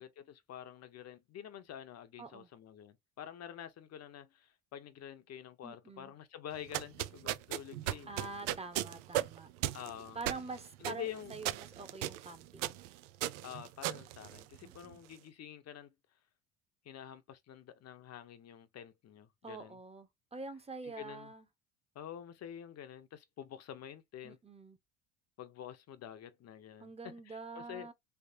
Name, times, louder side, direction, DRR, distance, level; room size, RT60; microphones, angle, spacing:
voice 1, 0.0-8.1 9.7-10.2 10.8-11.4 13.4-15.9 16.8-19.8 20.8-21.3 21.9-24.4 25.4-26.9 27.3-27.9, left 10 dB, 45° left, 0.9 m, -48 dB
voice 2, 2.2-2.5 5.6-6.1 8.1-9.5 10.1-12.8 14.6-15.0 19.4-21.5 24.2-24.8 26.8-27.9, right 3 dB, 15° right, 1.0 m, -46 dB
sound 1, 6.5-14.9, right 14 dB, 90° right, 0.5 m, -38 dB
3.4 x 3.2 x 2.8 m
hypercardioid pair, 75°, 35 cm